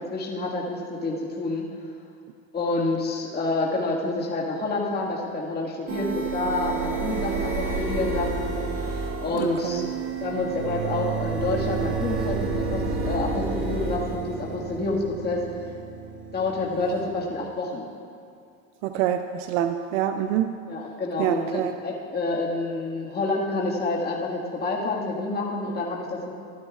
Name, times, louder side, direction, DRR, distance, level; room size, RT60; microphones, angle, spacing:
voice 1, 0.1-1.7 2.5-9.8 10.2-15.7 16.3-17.9 20.7-26.3, left 2 dB, 25° left, -4 dB, 1.7 m, -28 dB
sound 1, 5.9-17.5, right 4 dB, 30° right, 1.4 m, -30 dB
voice 2, 9.3-9.9 18.8-20.5 21.2-21.7, right 10 dB, 75° right, 8 dB, 0.6 m, -26 dB
16.0 x 12.0 x 2.4 m, 2.3 s
supercardioid pair, 110°, 39 cm